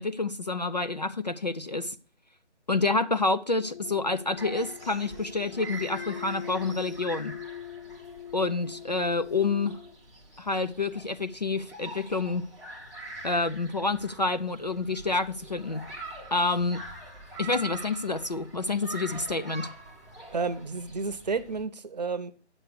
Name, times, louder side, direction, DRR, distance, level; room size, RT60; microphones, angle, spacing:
voice 1, 0.0-2.0 2.7-7.4 8.3-9.8 10.4-12.5 13.2-15.9 16.3-16.8 17.4-19.7, left 3 dB, 40° left, 0.4 m, -28 dB
sound 1, 3.6-10.0, left 11 dB, 25° left, 1.3 m, -42 dB
sound 2, 4.4-21.6, right 2 dB, ahead, 0.9 m, -45 dB
voice 2, 20.3-22.3, right 4 dB, 35° right, 0.8 m, -31 dB
9.4 x 7.2 x 6.6 m
figure-of-eight pair, 155°, 35 cm